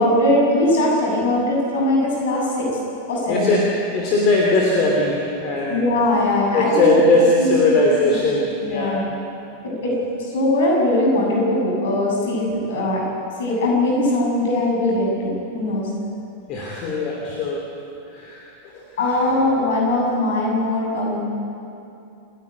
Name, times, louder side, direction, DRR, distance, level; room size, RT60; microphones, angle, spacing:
voice 1, 0.0-2.8 3.1-3.6 5.7-6.9 7.4-7.7 8.1-8.2 8.6-9.0 9.6-10.0 10.3-13.0 13.4-15.9 19.0-21.2, left 1 dB, 55° left, -2 dB, 7.4 m, -20 dB
voice 2, 3.3-5.9 6.5-9.1 16.5-17.7 18.1-18.8, left 2 dB, 35° left, -1 dB, 3.0 m, -20 dB
28.5 x 11.0 x 9.5 m, 2.7 s
figure-of-eight pair, 90°, 0 cm